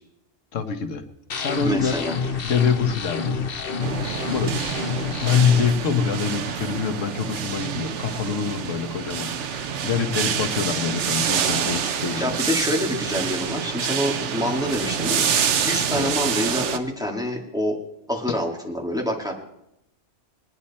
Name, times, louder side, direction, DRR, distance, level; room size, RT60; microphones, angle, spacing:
voice 1, 0.5-1.0 1.4-2.0 2.4-3.5 4.3-4.5 5.1-12.2 15.9-16.1, left 6 dB, 90° left, 6 dB, 1.4 m, -25 dB
sound 1, 1.3-5.7, left 5 dB, 50° left, 1.1 m, -28 dB
voice 2, 1.6-2.1 12.2-15.3 15.6-17.8 18.1-19.4, left 1 dB, 5° right, -1 dB, 2.1 m, -26 dB
sound 2, 3.8-16.8, right 8 dB, 70° right, 1.1 m, -27 dB
21.0 x 9.8 x 4.2 m, 0.84 s
omnidirectional pair, 1.3 m